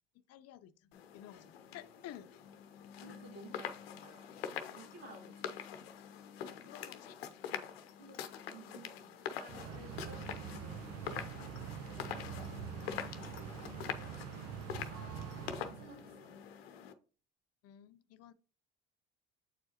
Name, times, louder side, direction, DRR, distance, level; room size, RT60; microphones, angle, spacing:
voice 1, 0.1-2.3 6.5-7.7 9.7-9.9 11.2-11.6 13.6-13.9 17.6-18.3, left 11 dB, 55° left, 0.7 m, -54 dB
sound 1, 0.9-16.9, left 8 dB, 90° left, 0.7 m, -45 dB
voice 2, 3.0-3.7 4.0-5.6 8.0-10.8 12.0-13.0 14.8-16.4, right 3 dB, 80° right, 2.9 m, -55 dB
sound 2, 9.5-16.3, right 8 dB, 55° right, 0.8 m, -45 dB
8.2 x 4.5 x 2.9 m
hypercardioid pair, 70°, 29 cm